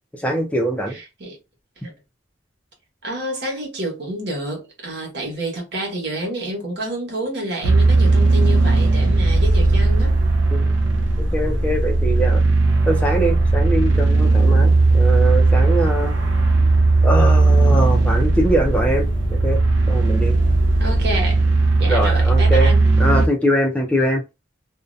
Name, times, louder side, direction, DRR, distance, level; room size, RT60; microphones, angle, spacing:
voice 1, 0.2-1.0 10.5-10.7 11.2-12.4 12.9-16.1 17.0-19.6 19.9-20.4 21.9-22.7 23.0-24.2, right 1 dB, 10° left, 0.4 m, -22 dB
voice 2, 0.9-1.4 1.8-1.9 3.0-10.2 20.8-21.4 21.7-22.8, right 1 dB, 65° right, 1.2 m, -28 dB
sound 1, 7.6-23.3, right 2 dB, 80° right, 0.7 m, -16 dB
2.5 x 2.1 x 2.5 m
head